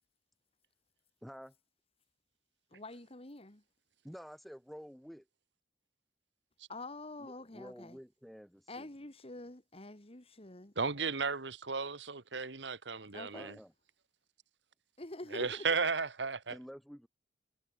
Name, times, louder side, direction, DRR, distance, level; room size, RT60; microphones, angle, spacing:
voice 1, 1.2-1.5 4.0-5.3 7.2-8.9 13.3-13.7 16.5-17.1, equal, ahead, 6.8 m, -50 dB
voice 2, 2.7-3.6 6.7-8.0 8.7-10.7 13.1-13.6 15.0-15.7, left 2 dB, 35° left, 2.3 m, -47 dB
voice 3, 10.8-13.6 15.3-16.5, right 4 dB, 85° right, 1.7 m, -34 dB
head